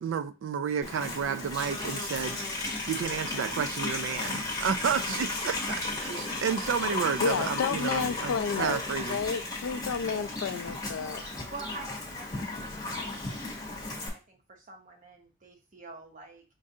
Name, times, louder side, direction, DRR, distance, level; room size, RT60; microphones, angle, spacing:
voice 1, 0.0-2.4 2.9-9.2, right 7 dB, 70° right, 0.3 m, -31 dB
Livestock farm animals working animals, 0.8-14.1, left 2 dB, 20° left, 1.0 m, -34 dB
voice 2, 7.2-11.2, left 6 dB, 85° left, 0.4 m, -31 dB
voice 3, 11.5-16.4, right 3 dB, 40° right, 0.9 m, -47 dB
5.2 x 2.4 x 2.7 m
head